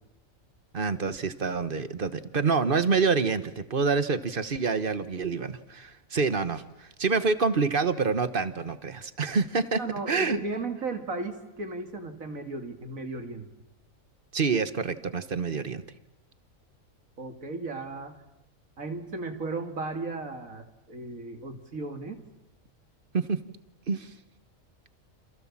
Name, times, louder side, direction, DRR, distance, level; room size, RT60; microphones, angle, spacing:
voice 1, 0.7-9.8 10.1-10.4 14.3-15.8 23.1-23.4 23.9-24.1, right 4 dB, 40° right, 12 dB, 1.3 m, -27 dB
voice 2, 9.8-13.5 17.2-18.2 18.8-22.2, right 3 dB, 75° right, 6 dB, 2.8 m, -35 dB
29.0 x 27.5 x 7.4 m, 0.90 s
omnidirectional pair, 1.4 m